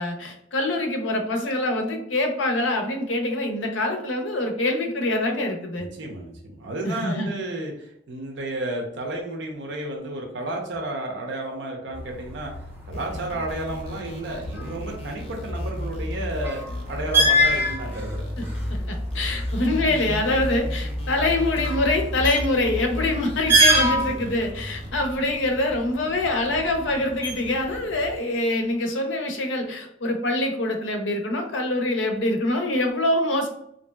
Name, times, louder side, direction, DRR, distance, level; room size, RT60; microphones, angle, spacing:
voice 1, 0.0-5.9 6.8-7.3 18.4-18.5 18.9-33.5, left 2 dB, 75° left, 4 dB, 0.6 m, -25 dB
voice 2, 5.8-12.5 12.8-18.2 23.1-23.2 23.8-24.2, right 1 dB, 65° right, 1 dB, 0.6 m, -32 dB
sound 1, 11.9-28.2, right 1 dB, 10° right, 0.6 m, -27 dB
sound 2, 12.9-24.9, left 1 dB, 30° left, 0.6 m, -36 dB
3.1 x 2.6 x 2.2 m, 0.73 s
head